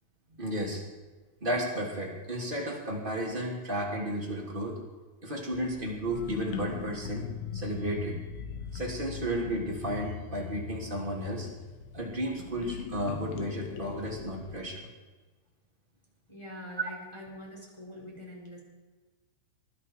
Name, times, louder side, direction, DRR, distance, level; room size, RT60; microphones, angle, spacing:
voice 1, 0.4-0.8 1.4-4.8 5.2-8.2 8.7-11.5 11.9-14.9, right 1 dB, 15° right, -2 dB, 1.8 m, -33 dB
sound 1, 5.5-14.6, left 8 dB, 75° left, 3.0 m, -40 dB
voice 2, 16.3-18.6, equal, 5° left, -3 dB, 3.8 m, -44 dB
21.5 x 12.5 x 4.7 m, 1.3 s
omnidirectional pair, 5.8 m